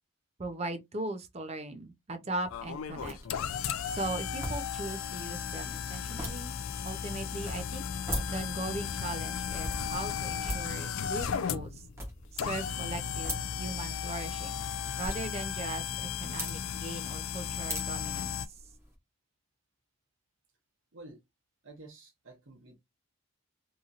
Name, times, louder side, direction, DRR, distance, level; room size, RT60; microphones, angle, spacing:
voice 1, 0.4-3.2 3.9-6.5 6.8-7.8 8.3-11.8 12.3-14.6 15.0-15.8 16.2-18.4, right 2 dB, 30° right, 0.5 m, -39 dB
sound 1, 2.4-18.9, equal, 10° right, 0.9 m, -44 dB
sound 2, 2.5-18.5, left 7 dB, 70° left, 0.4 m, -35 dB
sound 3, 4.4-8.2, left 6 dB, 50° left, 0.7 m, -55 dB
voice 2, 20.9-21.2 21.6-22.7, right 2 dB, 65° right, 0.9 m, -50 dB
2.9 x 2.6 x 2.4 m
head